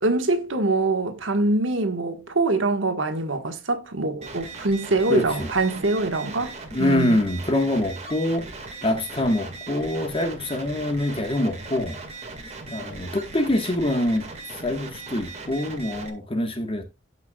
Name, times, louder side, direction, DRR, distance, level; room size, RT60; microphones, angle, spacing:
voice 1, 0.0-7.2, right 2 dB, 70° right, 1.6 m, -24 dB
sound 1, 4.2-16.1, right 3 dB, 35° right, 2.0 m, -39 dB
voice 2, 5.1-5.5 6.7-8.5 8.8-12.0 12.7-14.3 14.6-16.8, left 1 dB, 30° left, 1.5 m, -25 dB
17.5 x 5.8 x 2.4 m
head